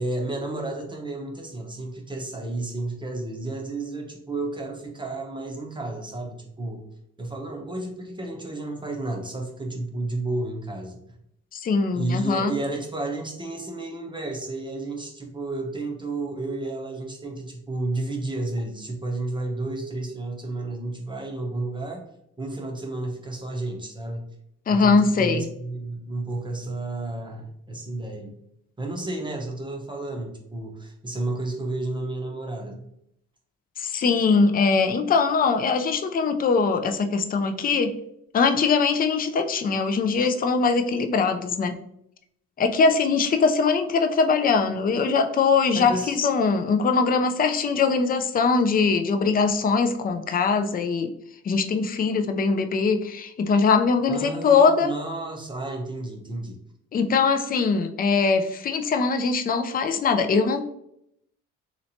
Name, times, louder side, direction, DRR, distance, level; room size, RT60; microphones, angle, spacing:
voice 1, 0.0-6.8 7.2-11.0 11.9-22.0 22.4-24.3 24.7-28.4 28.8-32.9 45.7-46.2 54.1-56.6, right 2 dB, 15° right, 1 dB, 0.7 m, -32 dB
voice 2, 11.5-12.5 24.7-25.5 33.8-37.9 38.3-41.8 42.6-51.1 51.4-54.9 56.9-60.6, left 4 dB, 30° left, 7 dB, 0.4 m, -22 dB
3.2 x 2.9 x 2.7 m, 0.75 s
cardioid pair, 90°, 30 cm